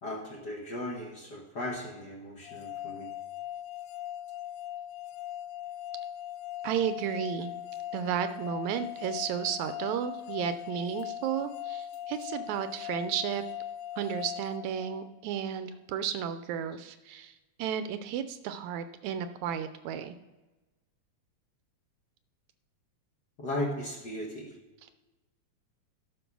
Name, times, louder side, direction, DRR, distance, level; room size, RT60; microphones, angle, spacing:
voice 1, 0.0-3.1 23.4-24.5, left 1 dB, 45° left, -2 dB, 1.5 m, -36 dB
sound 1, 2.4-15.4, left 11 dB, 90° left, 2.1 m, -40 dB
voice 2, 6.6-7.5 7.9-13.4 14.0-17.3 17.6-20.2, right 9 dB, 80° right, 10 dB, 1.9 m, -33 dB
12.5 x 5.4 x 6.0 m, 1.1 s
omnidirectional pair, 3.4 m